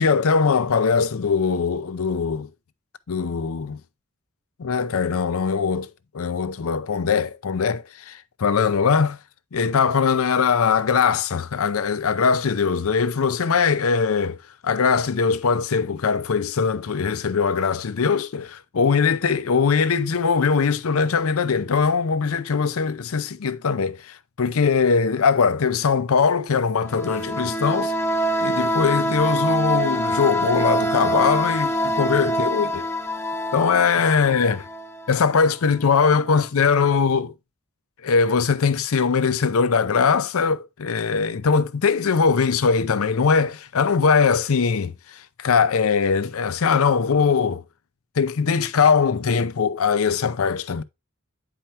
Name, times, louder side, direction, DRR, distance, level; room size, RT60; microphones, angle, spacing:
voice 1, 0.0-2.5 3.1-3.8 4.6-5.9 6.1-9.2 9.5-14.4 14.6-27.9 28.4-32.9 33.5-34.6 35.1-37.3 38.0-47.6 48.2-50.8, left 5 dB, 85° left, 0.6 m, -21 dB
sound 1, 26.8-35.4, equal, 10° left, 0.6 m, -25 dB
8.8 x 5.1 x 2.8 m
head